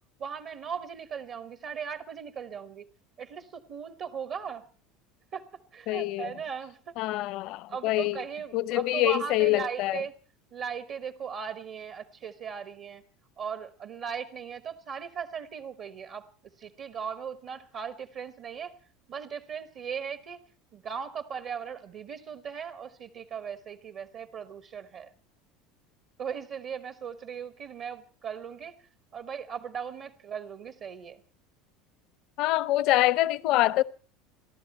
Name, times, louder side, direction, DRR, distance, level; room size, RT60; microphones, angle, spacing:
voice 1, 0.2-2.9 3.2-4.6 5.3-7.0 7.7-10.1 10.5-13.0 13.4-16.3 16.6-18.8 19.1-20.5 20.7-25.1 26.2-28.8 29.1-31.2, right 7 dB, 50° right, 1.0 m, -38 dB
voice 2, 5.9-6.3 7.0-8.2 8.5-10.0 32.4-33.8, left 17 dB, 60° left, 0.7 m, -25 dB
28.5 x 11.0 x 4.3 m
supercardioid pair, 110°, 0 cm